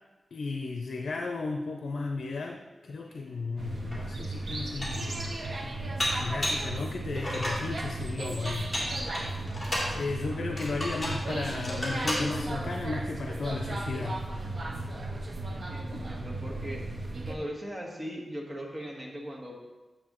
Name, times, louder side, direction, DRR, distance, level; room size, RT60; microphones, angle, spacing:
voice 1, 0.3-5.3 6.2-9.1 9.9-14.3 15.9-16.1, left 3 dB, 70° left, 3 dB, 0.6 m, -34 dB
sound 1, 3.0-3.2 4.0-5.6 6.1-6.2 6.6-7.4 7.7-9.1, right 2 dB, 85° right, 1.3 m, -43 dB
sound 2, 3.6-17.4, right 2 dB, 45° right, 0.8 m, -35 dB
Dishes pots and pans, 3.9-4.0 4.5-5.1 6.0-6.7 7.2-7.7 8.5-9.9 10.6-11.2 11.6-12.3, left 1 dB, 15° left, 2.3 m, -32 dB
voice 2, 15.7-17.0 17.3-19.5, equal, 25° right, -1 dB, 1.4 m, -39 dB
9.5 x 6.6 x 3.0 m, 1.1 s
wide cardioid pair, 130°, 0 cm